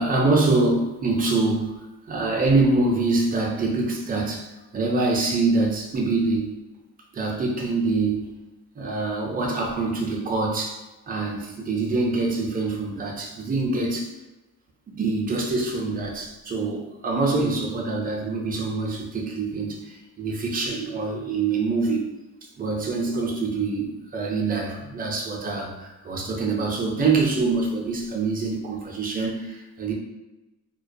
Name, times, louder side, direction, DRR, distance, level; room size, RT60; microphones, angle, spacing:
voice 1, 0.0-1.8 2.1-4.5 4.7-6.5 7.1-8.3 8.8-10.8 11.1-14.1 14.9-22.1 22.6-29.9, right 3 dB, 30° right, -1 dB, 0.5 m, -25 dB
2.3 x 2.2 x 2.6 m, 1.1 s
cardioid pair, 125°, 31 cm